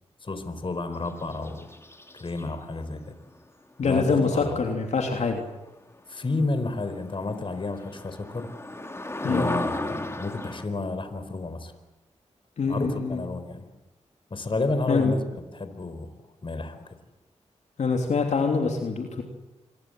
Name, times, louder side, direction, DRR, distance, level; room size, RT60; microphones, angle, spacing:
voice 1, 0.2-1.7 2.1-3.2 3.8-4.6 6.1-8.5 9.2-11.7 12.7-13.7 14.3-16.2 16.4-16.9, left 2 dB, 45° left, 9 dB, 4.2 m, -31 dB
sound 1, 0.9-2.5 6.0-6.1 6.6-6.7 6.9-10.6, left 1 dB, 20° left, 3.0 m, -34 dB
voice 2, 3.8-5.4 9.2-9.5 12.6-13.2 14.9-15.1 17.8-19.2, left 4 dB, 75° left, 3 dB, 3.2 m, -24 dB
26.5 x 22.0 x 7.9 m, 1.0 s
cardioid pair, 55°, 12 cm